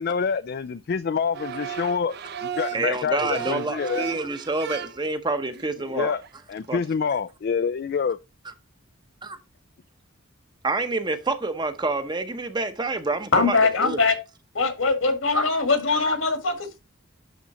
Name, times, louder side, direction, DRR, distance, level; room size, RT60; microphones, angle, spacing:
voice 1, 0.0-2.1 2.4-4.1 5.8-6.2 6.5-8.2, left 6 dB, 50° left, 0.3 m, -26 dB
sound 1, 1.3-2.9 3.3-5.2 5.5-5.9 6.2-6.3 6.6-6.8, right 9 dB, 50° right, 0.6 m, -35 dB
voice 2, 2.7-6.2 6.7-6.8 10.6-14.0, right 3 dB, 20° right, 0.8 m, -27 dB
voice 3, 13.3-14.2 14.5-16.7, left 3 dB, 80° left, 2.0 m, -21 dB
11.0 x 3.8 x 4.1 m
head